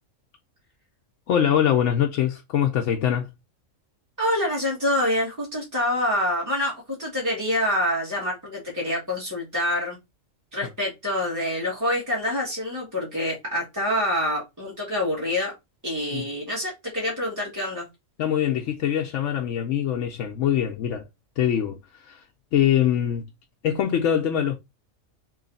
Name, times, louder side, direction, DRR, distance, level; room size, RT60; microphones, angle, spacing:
voice 1, 1.3-3.3 16.1-16.3 18.2-21.0 21.4-21.8 22.0-22.2 22.5-23.3 23.6-24.5, left 9 dB, 70° left, 0.9 m, -23 dB
voice 2, 4.2-10.0 10.5-15.5 15.8-17.9, left 1 dB, 15° right, 1.6 m, -26 dB
3.1 x 3.1 x 3.9 m
omnidirectional pair, 1.3 m